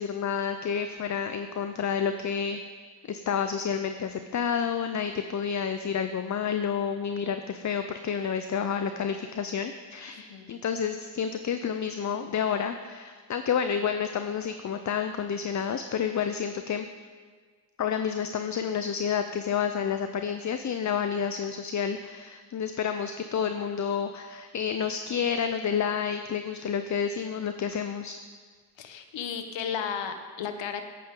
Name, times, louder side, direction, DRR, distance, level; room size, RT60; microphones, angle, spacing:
voice 1, 0.0-2.6 3.0-16.9 17.8-28.2, left 7 dB, 35° left, 8 dB, 0.8 m, -29 dB
voice 2, 10.2-10.5 28.8-30.8, left 7 dB, 65° left, 7 dB, 1.5 m, -34 dB
18.0 x 8.8 x 3.9 m, 1.5 s
supercardioid pair, 65°, 48 cm